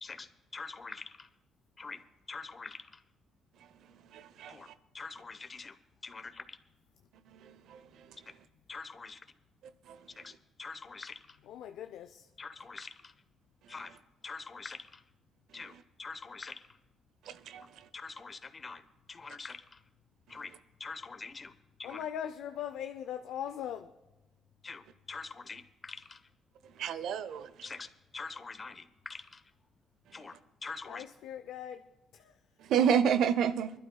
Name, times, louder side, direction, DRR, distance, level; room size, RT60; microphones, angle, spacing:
voice 1, 0.0-1.3 1.8-2.0 2.3-3.0 4.5-4.7 4.9-5.8 6.0-6.6 8.7-9.2 10.2-11.4 12.4-13.1 13.7-14.0 14.2-15.0 15.5-16.6 17.6-17.7 17.9-19.8 20.3-20.5 20.8-21.5 21.8-22.0 24.6-26.2 27.6-27.9 28.1-29.4 30.1-31.1, left 4 dB, 30° left, 0.9 m, -45 dB
voice 2, 4.1-4.6 7.4-7.8 9.9-10.0 17.3-17.6 26.8-27.5 32.7-33.7, right 8 dB, 80° right, 0.6 m, -29 dB
voice 3, 11.4-12.3 21.8-23.9 30.9-31.8 32.1-32.3, left 9 dB, 85° left, 0.4 m, -40 dB
25.0 x 12.0 x 2.3 m
cardioid pair, 90°, 0 cm